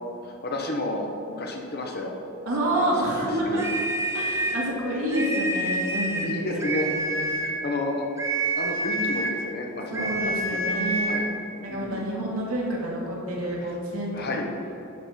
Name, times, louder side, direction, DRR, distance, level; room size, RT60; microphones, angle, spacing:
voice 1, 0.4-2.1 2.8-3.6 6.2-6.9 7.6-8.1 8.6-10.1 10.5-10.8 11.1-11.3 11.7-12.1 14.1-14.5, left 2 dB, 50° left, 1 dB, 1.1 m, -31 dB
voice 2, 2.5-3.8 4.1-7.3 9.9-11.1 11.6-14.1, right 1 dB, 85° right, -4 dB, 2.2 m, -28 dB
sound 1, 3.5-4.6 5.1-6.3 6.6-7.6 8.2-9.4 9.9-11.3, right 1 dB, 15° right, 0.9 m, -28 dB
10.5 x 4.6 x 5.8 m, 2.8 s
head